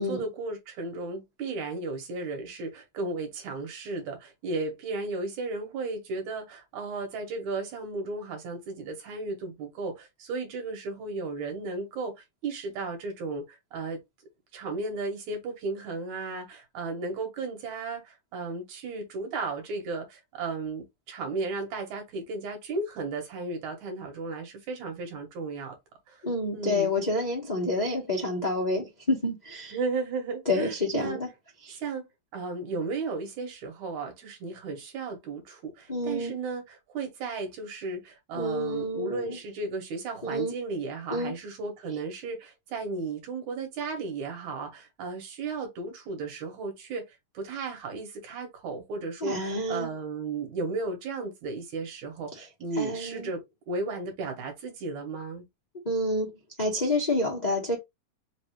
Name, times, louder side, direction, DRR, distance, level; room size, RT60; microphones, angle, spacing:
voice 1, 0.0-14.0 14.5-25.8 26.1-26.2 26.5-26.9 29.7-31.2 31.7-32.1 32.3-47.0 47.3-53.4 53.7-55.4, right 3 dB, 70° right, 2.6 m, -34 dB
voice 2, 26.2-29.7 30.5-31.3 31.6-31.8 35.9-36.3 38.3-39.4 40.2-40.5 41.1-41.3 49.2-49.9 52.7-53.3 55.8-56.3 56.6-57.8, left 2 dB, 50° left, 0.5 m, -28 dB
5.2 x 2.7 x 3.1 m
omnidirectional pair, 3.6 m